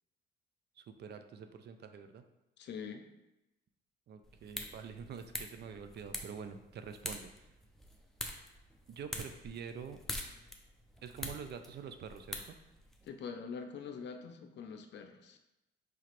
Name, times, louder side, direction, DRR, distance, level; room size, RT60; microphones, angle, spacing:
voice 1, 0.8-2.2 4.1-7.5 8.9-10.0 11.0-12.5, right 6 dB, 55° right, 8 dB, 0.4 m, -46 dB
voice 2, 2.6-3.0 13.1-15.4, left 6 dB, 65° left, 5 dB, 0.6 m, -44 dB
sound 1, 4.2-13.1, left 1 dB, ahead, 0.5 m, -46 dB
4.9 x 2.9 x 3.0 m, 0.94 s
cardioid pair, 90°, 20 cm